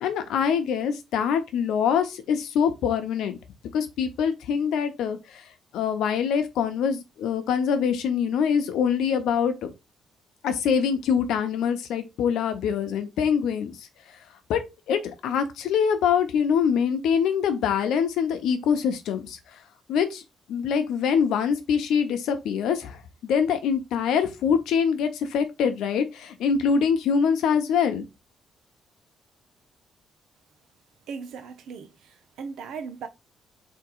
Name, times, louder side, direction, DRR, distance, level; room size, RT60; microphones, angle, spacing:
voice 1, 0.0-3.4 3.7-5.4 5.7-9.7 10.4-13.8 14.5-14.6 14.9-19.4 19.9-20.2 20.5-28.1, left 7 dB, 90° left, 0.9 m, -24 dB
voice 2, 31.1-33.1, right 5 dB, 75° right, 0.7 m, -38 dB
3.7 x 2.9 x 4.6 m
cardioid pair, 175°, 0 cm